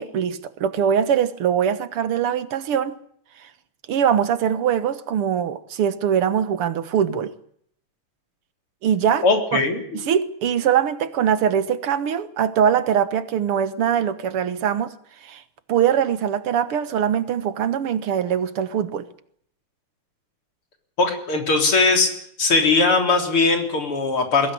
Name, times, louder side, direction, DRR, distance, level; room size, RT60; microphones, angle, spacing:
voice 1, 0.0-2.9 3.4-3.5 3.9-7.3 8.8-9.2 9.5-9.6 10.1-14.9 15.2-15.4 15.7-19.1, right 8 dB, 85° right, 2.2 m, -22 dB
voice 2, 9.2-10.0 21.0-22.1 22.4-24.5, left 3 dB, 75° left, 4.6 m, -19 dB
22.0 x 16.5 x 9.9 m
omnidirectional pair, 2.4 m